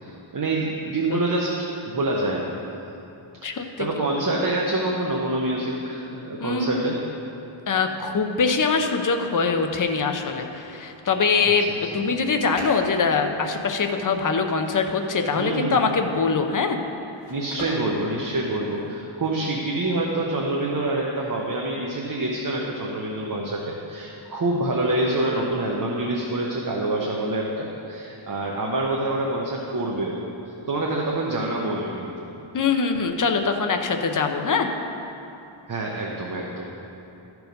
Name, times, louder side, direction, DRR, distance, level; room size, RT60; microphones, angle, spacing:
voice 1, 0.0-2.5 3.5-7.0 15.4-15.8 17.3-30.2 30.7-32.3 35.7-36.7, right 2 dB, 40° right, -2 dB, 0.9 m, -26 dB
voice 2, 3.4-4.1 4.4-4.5 6.3-6.9 7.7-16.8 32.5-34.7, left 5 dB, 40° left, 5 dB, 0.7 m, -23 dB
sound 1, 12.1-19.0, left 1 dB, 75° left, 2.1 m, -41 dB
13.5 x 4.7 x 5.3 m, 2.9 s
wide cardioid pair, 115°, 50 cm